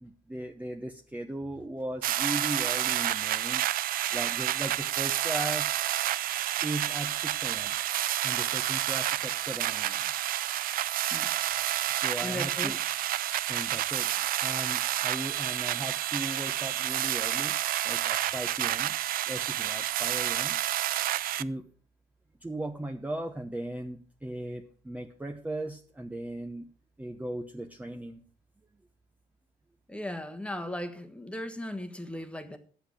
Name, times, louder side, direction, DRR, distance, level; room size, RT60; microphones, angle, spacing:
voice 1, 0.0-3.6 4.1-5.8 6.6-7.8 8.2-10.1 11.9-12.8 13.5-14.1 14.4-17.6 17.8-19.0 19.3-20.6 21.3-21.6 22.4-26.7 27.0-28.2, right 1 dB, 10° right, 0.9 m, -37 dB
sound 1, 2.0-21.4, right 13 dB, 60° right, 0.5 m, -29 dB
voice 2, 12.2-12.8 29.9-32.6, left 1 dB, 5° left, 1.4 m, -37 dB
10.0 x 8.0 x 6.4 m
cardioid pair, 110°, 17 cm